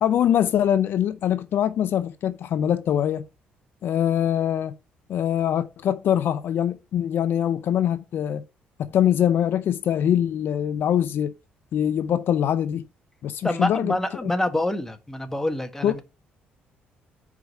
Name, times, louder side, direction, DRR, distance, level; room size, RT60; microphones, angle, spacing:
voice 1, 0.0-3.2 3.8-4.7 5.1-8.4 8.9-11.3 11.7-12.8 13.2-14.0 14.2-14.3 15.8-16.0, left 10 dB, 65° left, 0.6 m, -23 dB
voice 2, 13.4-16.0, left 1 dB, 10° left, 1.3 m, -26 dB
4.8 x 4.7 x 5.3 m
supercardioid pair, 70°, 4 cm